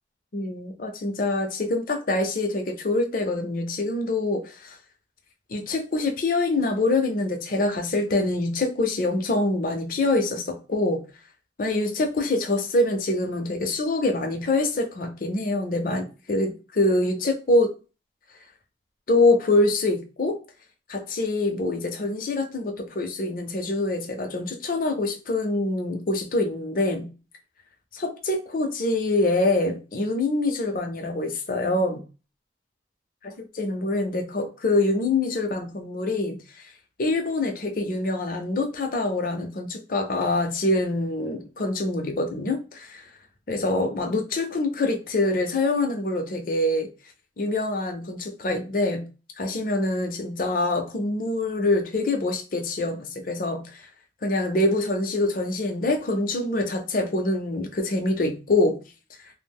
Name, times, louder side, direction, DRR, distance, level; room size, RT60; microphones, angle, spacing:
voice 1, 0.3-4.8 5.5-11.0 11.6-17.7 19.1-20.4 20.9-27.1 27.9-32.0 33.5-36.4 37.0-43.1 43.5-46.9 47.4-49.1 49.4-53.8 54.2-58.8, left 2 dB, 50° left, 0.5 m, -25 dB
2.4 x 2.0 x 3.4 m
head